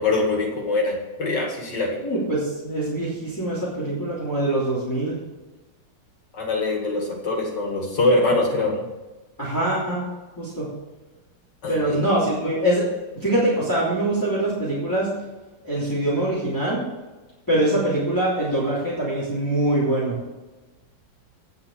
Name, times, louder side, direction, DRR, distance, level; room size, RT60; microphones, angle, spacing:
voice 1, 0.0-2.0 6.3-8.8 11.6-12.1, left 2 dB, 65° left, 0 dB, 2.6 m, -23 dB
voice 2, 2.0-5.2 9.4-10.0 10.4-10.7 11.7-12.9 13.1-15.1 15.6-16.8 17.5-20.2, right 1 dB, 10° left, -7 dB, 2.8 m, -23 dB
9.5 x 5.9 x 7.2 m, 1.2 s
omnidirectional pair, 2.0 m